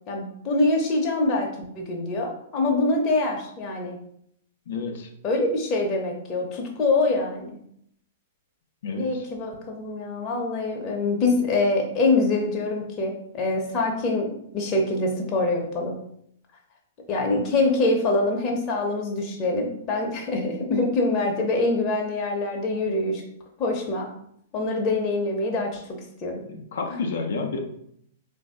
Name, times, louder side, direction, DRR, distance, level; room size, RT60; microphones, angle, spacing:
voice 1, 0.1-4.0 5.2-7.6 9.0-15.9 17.1-23.2 23.6-24.1 24.5-25.8 26.2-26.4, left 2 dB, 30° left, 0 dB, 0.8 m, -24 dB
voice 2, 4.7-5.1 8.8-9.2 26.4-27.6, left 4 dB, 60° left, 3 dB, 0.6 m, -30 dB
3.8 x 2.7 x 3.6 m, 0.71 s
figure-of-eight pair, 105°, 0 cm